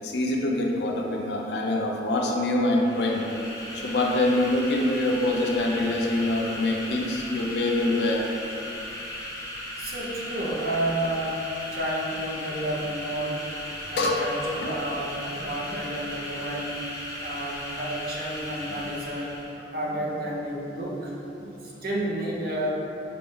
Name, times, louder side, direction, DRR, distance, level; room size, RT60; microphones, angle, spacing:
voice 1, 0.0-3.2 3.7-8.3 13.8-14.2 14.5-14.7, left 2 dB, 65° left, 0 dB, 0.5 m, -25 dB
sound 1, 2.7-19.6, left 1 dB, 20° left, 0.7 m, -37 dB
voice 2, 9.8-13.5 13.9-16.8 17.2-19.4 19.7-21.1 21.4-22.7, right 1 dB, 55° right, -4 dB, 0.8 m, -31 dB
5.7 x 2.6 x 3.5 m, 3.0 s
head